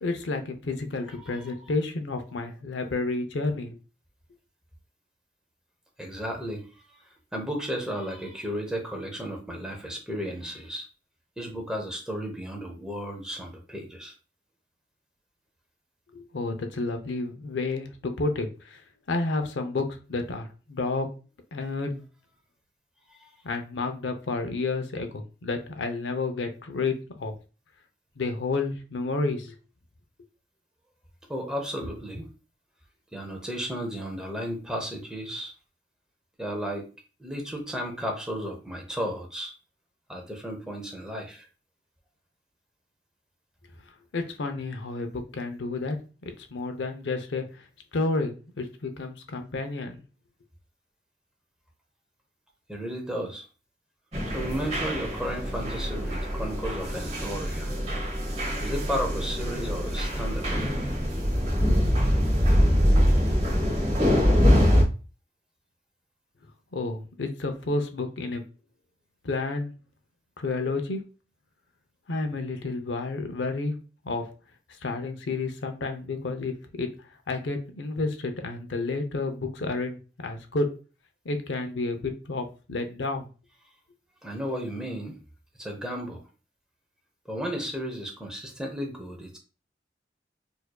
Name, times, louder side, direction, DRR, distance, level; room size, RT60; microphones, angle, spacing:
voice 1, 0.0-3.8 16.1-18.8 19.1-21.1 21.5-22.0 23.4-27.3 28.2-29.5 44.1-46.0 46.5-47.7 47.9-50.0 66.7-68.4 69.2-69.7 70.4-71.0 72.1-73.8 74.0-74.3 74.8-76.9 77.3-80.7 81.3-83.3, left 3 dB, 90° left, 6 dB, 0.6 m, -30 dB
voice 2, 1.2-1.5 6.0-7.0 7.3-10.9 11.4-14.1 23.1-23.3 31.3-32.3 33.1-35.5 36.4-36.9 37.2-39.5 40.1-41.5 52.7-53.5 54.3-57.7 58.6-60.8 84.2-85.2 85.6-86.2 87.3-89.4, equal, 5° right, 1 dB, 0.7 m, -34 dB
sound 1, 54.1-64.8, equal, 35° right, 1.1 m, -24 dB
4.4 x 2.6 x 2.2 m, 0.34 s
head